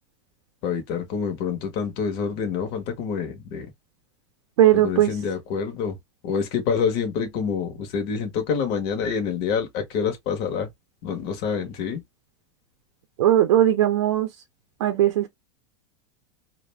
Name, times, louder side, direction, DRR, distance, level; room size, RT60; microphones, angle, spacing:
voice 1, 0.6-3.7 4.8-6.0 6.2-10.7 11.0-12.0, left 6 dB, 35° left, 0.7 m, -27 dB
voice 2, 4.6-5.1 13.2-14.3 14.8-15.3, right 12 dB, 75° right, 0.5 m, -18 dB
2.3 x 2.1 x 3.2 m
supercardioid pair, 175°, 15 cm